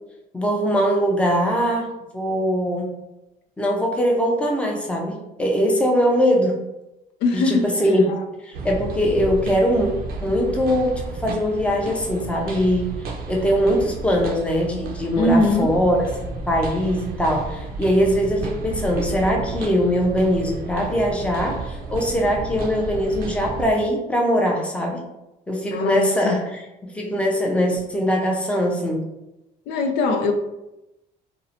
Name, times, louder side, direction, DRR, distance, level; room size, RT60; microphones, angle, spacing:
voice 1, 0.3-2.9 3.6-6.5 7.3-8.0 8.4-9.9 10.2-12.9 13.3-16.0 16.5-25.0 25.5-26.6 26.9-29.0, equal, 5° left, 0 dB, 0.5 m, -21 dB
voice 2, 7.2-8.2 15.2-15.8 25.7-26.4 29.7-30.3, left 2 dB, 85° left, 4 dB, 0.4 m, -22 dB
sound 1, 8.5-23.7, right 3 dB, 60° right, 0.4 m, -32 dB
2.7 x 2.0 x 2.7 m, 0.93 s
cardioid pair, 110°, 17 cm